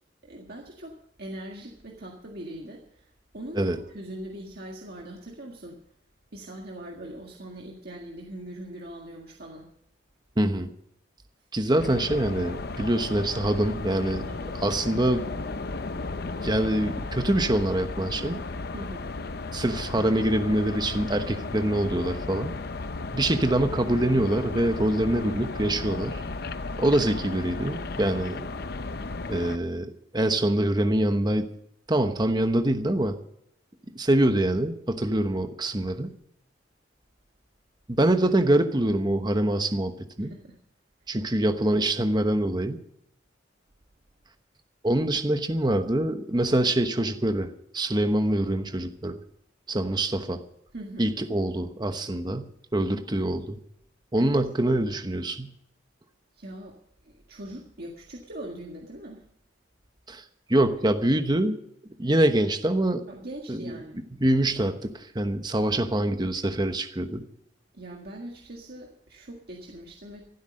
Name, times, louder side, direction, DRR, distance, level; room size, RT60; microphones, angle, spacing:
voice 1, 0.2-5.8 6.3-9.7 14.3-14.5 18.7-19.1 40.2-40.6 50.7-51.1 54.2-54.4 56.3-56.8 57.0-59.2 63.1-64.0 67.7-70.3, right 1 dB, 55° right, -1 dB, 1.8 m, -41 dB
voice 2, 10.4-10.7 11.5-14.3 14.6-15.2 16.4-18.4 19.5-22.5 23.1-26.2 26.8-28.4 29.3-31.5 31.9-33.2 34.0-36.1 37.9-39.9 40.2-40.3 41.1-42.8 44.8-47.5 47.7-49.2 49.7-50.4 51.0-53.6 54.1-55.5 60.1-60.2 60.5-61.6 62.0-63.0 63.5-63.7 64.2-67.2, right 1 dB, 20° right, 7 dB, 1.0 m, -25 dB
sound 1, 11.8-29.6, left 3 dB, 55° left, 0.7 m, -34 dB
14.0 x 12.0 x 6.4 m, 0.74 s
head